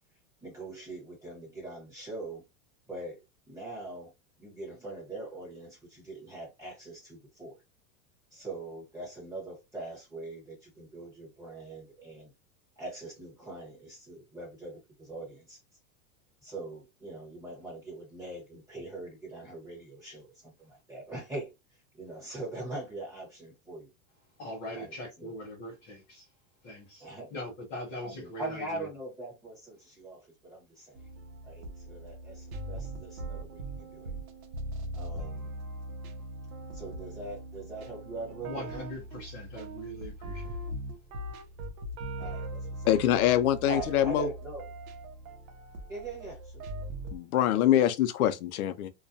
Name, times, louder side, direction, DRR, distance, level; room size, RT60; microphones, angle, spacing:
voice 1, 0.4-2.4 2.9-3.2 3.5-4.1 4.4-7.6 8.3-12.3 12.8-15.6 16.4-21.5 21.9-23.9 24.7-25.3 27.0-27.3 28.0-31.0 31.4-34.1 34.9-35.5 36.7-38.9 42.2-42.9 43.6-44.7 45.9-46.6, right 2 dB, 10° right, 1.1 m, -42 dB
voice 2, 24.4-26.3 26.6-28.9 38.4-40.7, left 1 dB, 20° left, 0.4 m, -41 dB
sound 1, 30.9-47.2, right 1 dB, 90° right, 0.7 m, -40 dB
voice 3, 42.9-44.3 47.1-48.9, left 11 dB, 85° left, 0.5 m, -24 dB
2.3 x 2.2 x 2.6 m
supercardioid pair, 170°, 42 cm